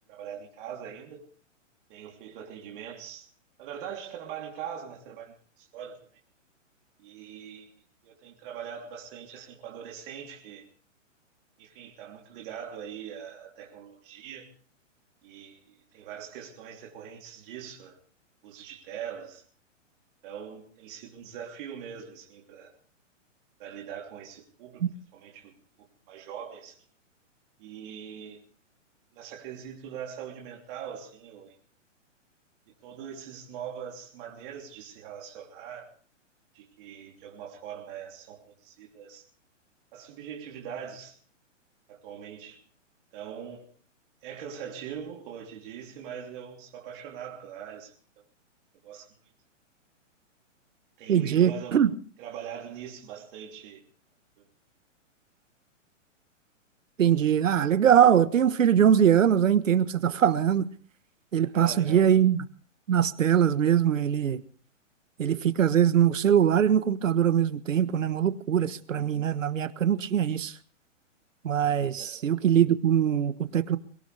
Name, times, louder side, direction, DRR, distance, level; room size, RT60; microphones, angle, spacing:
voice 1, 0.1-1.2 1.9-3.3 3.6-6.0 7.0-10.7 11.6-14.5 15.2-18.0 18.4-19.4 20.2-22.7 23.6-24.9 25.1-26.8 27.6-28.4 29.1-31.6 32.8-35.9 36.5-39.3 39.9-41.2 41.9-42.6 43.1-43.7 44.2-47.9 48.8-49.3 51.0-51.8 52.2-53.8 54.4-54.5 61.4-62.2 72.0-72.2, right 8 dB, 45° right, 3.2 m, -42 dB
voice 2, 51.1-51.9 57.0-60.7 61.3-62.4 62.9-64.4 65.2-70.5 71.4-73.8, right 9 dB, 80° right, 1.3 m, -22 dB
22.5 x 17.5 x 3.4 m
hypercardioid pair, 140°, 38 cm